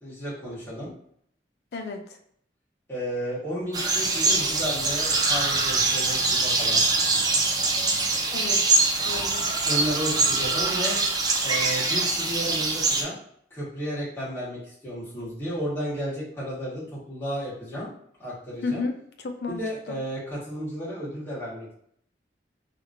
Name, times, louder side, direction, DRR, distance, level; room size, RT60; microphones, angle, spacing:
voice 1, 0.0-0.9 2.9-7.2 9.6-10.9 11.4-13.2 13.5-17.9 18.2-18.8 19.5-21.7, equal, 15° left, -9 dB, 1.2 m, -33 dB
voice 2, 1.7-2.2 8.3-8.8 9.0-9.5 18.6-19.6 19.9-20.0, left 3 dB, 65° left, 5 dB, 0.4 m, -33 dB
sound 1, 3.7-13.0, right 3 dB, 20° right, 0.3 m, -23 dB
2.9 x 2.5 x 2.6 m, 0.67 s
head